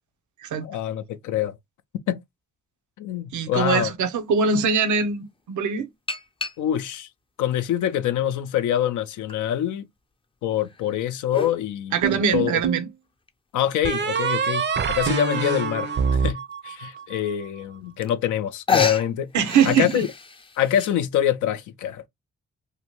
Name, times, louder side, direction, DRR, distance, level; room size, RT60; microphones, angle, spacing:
voice 1, 0.6-1.6 2.1-2.2 3.0-3.9 6.6-7.1 7.4-9.9 10.4-12.6 13.5-19.3 19.7-20.1 20.6-22.1, left 11 dB, 85° left, 0.4 m, -25 dB
voice 2, 3.3-5.9 11.9-12.9 19.3-20.1, right 6 dB, 80° right, 0.6 m, -22 dB
sound 1, 4.3-4.4 6.1-7.0 7.7-8.7 9.3-9.4 10.6-11.6 13.3-13.4 13.9-14.0 14.1-14.2 14.6-14.9 15.9-16.0 16.5-16.6 17.7-17.8 18.0-18.4 18.7-20.9, left 5 dB, 20° left, 0.4 m, -30 dB
sound 2, 12.0-12.9 13.8-17.2, right 6 dB, 40° right, 0.5 m, -25 dB
2.8 x 2.2 x 2.9 m
cardioid pair, 70°, 29 cm